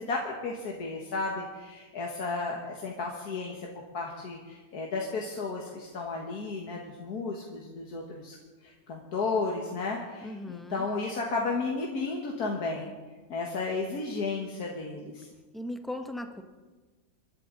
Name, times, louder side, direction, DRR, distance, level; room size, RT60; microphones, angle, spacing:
voice 1, 0.0-3.7 3.9-8.4 8.6-12.9 13.3-15.3, left 3 dB, 80° left, -1 dB, 2.0 m, -33 dB
voice 2, 10.2-10.9 15.5-16.4, left 1 dB, ahead, 6 dB, 0.6 m, -38 dB
28.0 x 11.5 x 3.9 m, 1.3 s
omnidirectional pair, 1.6 m